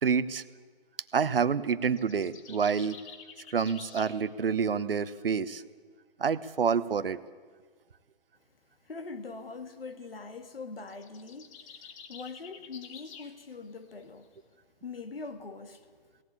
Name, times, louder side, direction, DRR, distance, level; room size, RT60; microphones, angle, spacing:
voice 1, 0.0-0.4 1.1-3.0 3.5-5.6 6.2-7.2, right 6 dB, 70° right, 1.0 m, -28 dB
sound 1, 1.9-4.2 10.8-13.3, left 7 dB, 35° left, 1.8 m, -49 dB
voice 2, 8.8-11.8 12.1-14.3 14.8-15.9, left 4 dB, 75° left, 1.9 m, -42 dB
18.5 x 17.5 x 8.6 m
figure-of-eight pair, 135°, 29 cm